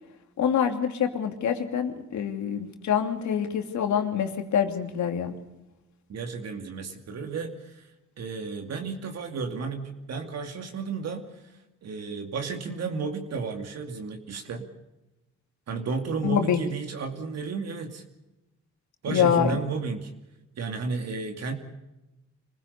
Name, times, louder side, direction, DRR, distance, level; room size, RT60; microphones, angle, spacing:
voice 1, 0.4-5.3 16.2-16.6 19.1-19.5, left 8 dB, 70° left, 5 dB, 2.8 m, -25 dB
voice 2, 6.1-7.9 8.2-14.7 15.7-18.0 19.0-20.1 20.6-21.6, right 4 dB, 60° right, 4 dB, 2.6 m, -33 dB
26.0 x 16.0 x 7.0 m, 0.98 s
cardioid pair, 90°, 30 cm